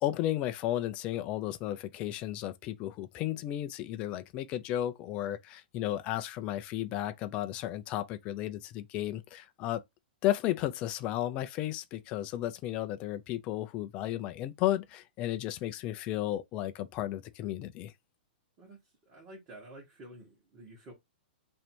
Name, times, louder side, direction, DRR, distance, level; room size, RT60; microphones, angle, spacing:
voice 1, 0.0-9.8 10.2-17.9, left 13 dB, 20° left, 0.3 m, -33 dB
voice 2, 19.1-20.9, right 1 dB, 20° right, 1.1 m, -50 dB
3.1 x 2.6 x 4.4 m
hypercardioid pair, 175°, 6 cm